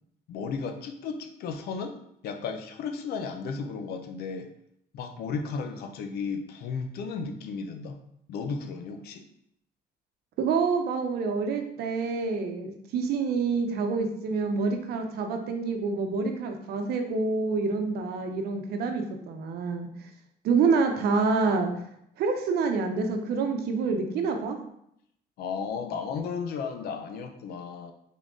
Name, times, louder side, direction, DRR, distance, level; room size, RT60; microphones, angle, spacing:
voice 1, 0.3-2.0 2.2-4.5 4.9-8.0 8.3-9.2 25.4-27.9, left 5 dB, 70° left, 7 dB, 0.6 m, -34 dB
voice 2, 10.4-19.9 20.4-21.7 22.2-24.6, right 4 dB, 70° right, 5 dB, 0.8 m, -27 dB
3.8 x 3.7 x 3.7 m, 0.73 s
cardioid pair, 110°, 17 cm